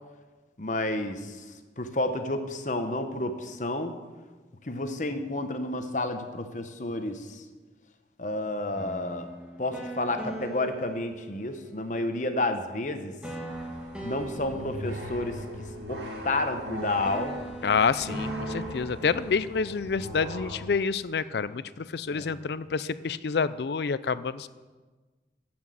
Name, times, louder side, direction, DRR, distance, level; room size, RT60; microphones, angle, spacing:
voice 1, 0.6-1.4 1.8-3.9 4.6-7.4 8.2-9.3 9.6-13.1 14.0-17.4 22.1-22.4, left 2 dB, 45° left, 7 dB, 1.0 m, -31 dB
sound 1, 8.7-11.9 13.2-16.7 17.0-19.6, right 1 dB, 5° right, 1.5 m, -40 dB
sound 2, 13.5-20.6, equal, 80° right, 2.1 m, -40 dB
voice 2, 17.6-24.5, left 5 dB, 70° left, 16 dB, 0.4 m, -28 dB
14.5 x 6.2 x 7.7 m, 1.3 s
head